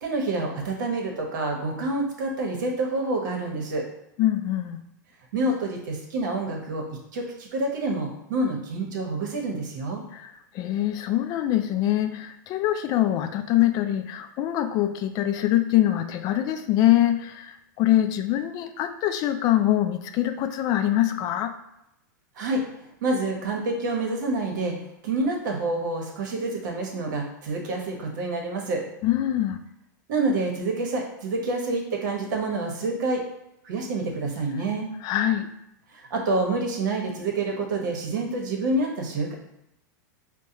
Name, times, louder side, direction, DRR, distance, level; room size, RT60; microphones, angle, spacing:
voice 1, 0.0-3.9 5.3-6.8 7.1-10.0 22.4-24.7 25.0-28.8 30.1-33.2 33.6-34.9 35.9-39.3, right 2 dB, 70° right, 1 dB, 1.0 m, -27 dB
voice 2, 4.2-4.8 10.1-21.5 29.0-29.6 35.0-35.5, left 13 dB, 40° left, 8 dB, 0.3 m, -24 dB
4.6 x 2.1 x 2.8 m, 0.83 s
hypercardioid pair, 125°, 10 cm